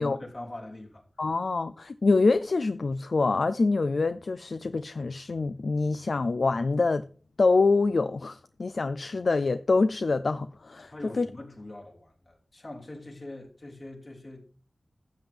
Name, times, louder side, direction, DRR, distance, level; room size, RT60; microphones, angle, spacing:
voice 1, 0.0-1.0 10.9-14.5, left 1 dB, 55° left, 2.9 m, -42 dB
voice 2, 1.2-7.0 7.4-11.3, left 3 dB, 75° left, 0.4 m, -25 dB
12.5 x 7.7 x 3.5 m
wide cardioid pair, 55°, 0 cm